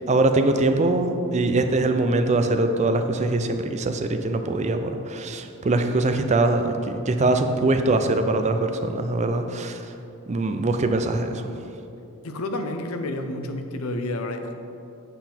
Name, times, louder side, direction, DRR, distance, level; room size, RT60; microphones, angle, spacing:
voice 1, 0.0-9.9 10.3-11.5, right 2 dB, 30° right, 7 dB, 0.4 m, -22 dB
voice 2, 12.2-14.5, left 1 dB, 70° left, 6 dB, 0.6 m, -30 dB
8.0 x 5.7 x 4.4 m, 2.7 s
head